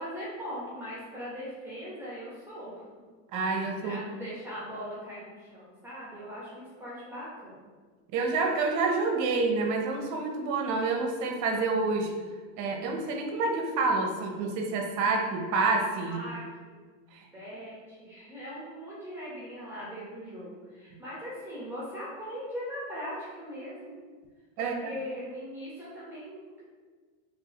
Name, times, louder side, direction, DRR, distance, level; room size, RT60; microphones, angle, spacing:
voice 1, 0.0-2.9 3.8-7.6 16.0-16.8 17.3-23.9 24.6-26.6, equal, 5° right, -8 dB, 1.0 m, -40 dB
voice 2, 3.3-4.0 8.1-12.1 12.6-16.2 17.1-17.2 24.6-24.9, right 3 dB, 45° right, 3 dB, 0.7 m, -28 dB
3.5 x 3.3 x 2.9 m, 1.5 s
supercardioid pair, 125°, 41 cm